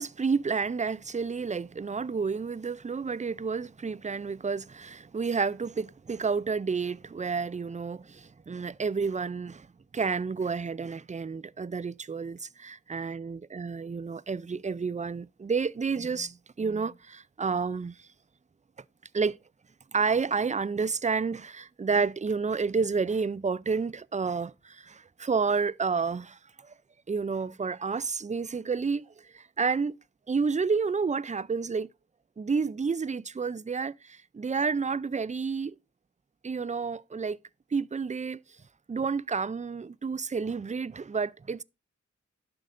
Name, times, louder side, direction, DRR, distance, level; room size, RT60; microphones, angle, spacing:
voice 1, 0.0-9.7 9.9-18.0 19.1-19.4 19.9-26.7 27.1-30.0 30.3-31.9 32.4-35.7 36.4-37.4 37.7-38.4 38.9-41.6, right 5 dB, 25° right, 0.3 m, -30 dB
11.5 x 7.6 x 2.5 m
wide cardioid pair, 60°, 31 cm